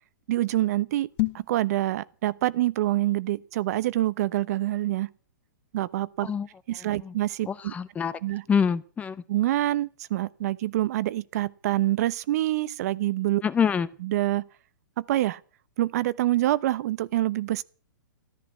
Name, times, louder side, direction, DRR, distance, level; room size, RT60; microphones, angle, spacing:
voice 1, 0.3-1.1 1.3-5.1 5.7-6.3 6.7-7.7 8.2-8.4 9.3-13.4 14.0-14.5 15.0-15.4 15.8-17.6, right 15 dB, 55° right, 0.9 m, -26 dB
sound 1, 1.1-1.6, left 20 dB, 40° left, 2.0 m, -28 dB
voice 2, 6.8-7.1 7.5-8.2 8.5-9.2 13.4-13.9, left 7 dB, 15° left, 0.8 m, -26 dB
14.0 x 13.0 x 7.2 m
hypercardioid pair, 140°, 10 cm